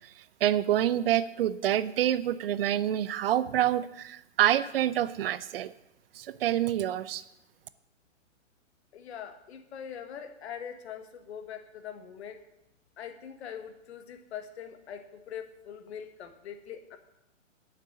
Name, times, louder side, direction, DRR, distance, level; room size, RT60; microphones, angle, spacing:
voice 1, 0.4-5.7 6.1-7.2, right 12 dB, 45° right, 16 dB, 0.6 m, -27 dB
voice 2, 8.9-12.4 13.0-17.0, left 8 dB, 55° left, 7 dB, 1.5 m, -42 dB
9.3 x 6.8 x 8.9 m, 0.87 s
hypercardioid pair, 130°, 39 cm